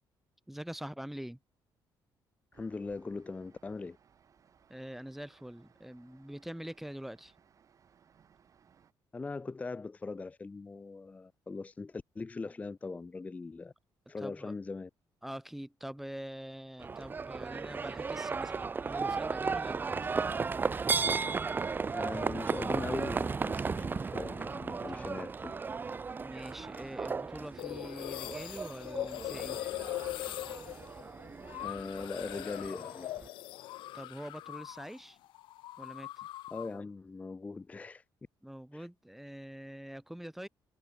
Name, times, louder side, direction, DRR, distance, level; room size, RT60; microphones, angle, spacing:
voice 1, 0.5-1.4 4.7-7.4 14.2-14.5 15.2-20.0 24.9-25.1 26.2-29.6 33.9-35.2 35.8-36.3 38.4-40.5, equal, 5° right, 3.5 m, -44 dB
voice 2, 2.5-4.0 9.1-13.7 14.1-14.9 21.9-25.6 31.6-33.1 36.5-38.0 38.7-38.9, left 3 dB, 20° left, 0.6 m, -40 dB
sound 1, 2.5-8.9, right 7 dB, 40° right, 5.7 m, -65 dB
Livestock farm animals working animals, 16.8-33.3, right 5 dB, 25° right, 0.9 m, -35 dB
sound 2, 27.6-35.0 35.2-36.8, left 15 dB, 85° left, 1.3 m, -41 dB
cardioid pair, 135°, 8 cm